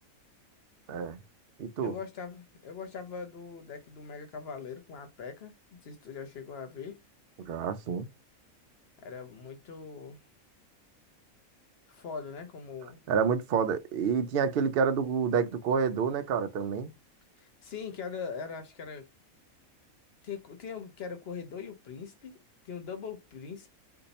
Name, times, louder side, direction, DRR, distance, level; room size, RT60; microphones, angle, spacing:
voice 1, 0.9-1.2 1.6-2.0 7.4-8.1 13.1-16.9, right 6 dB, 65° right, 0.5 m, -28 dB
voice 2, 1.8-5.5 5.8-7.0 9.0-10.2 11.9-13.0 17.4-19.1 20.2-22.3 22.6-23.7, left 6 dB, 50° left, 0.9 m, -41 dB
2.6 x 2.6 x 4.0 m
omnidirectional pair, 1.5 m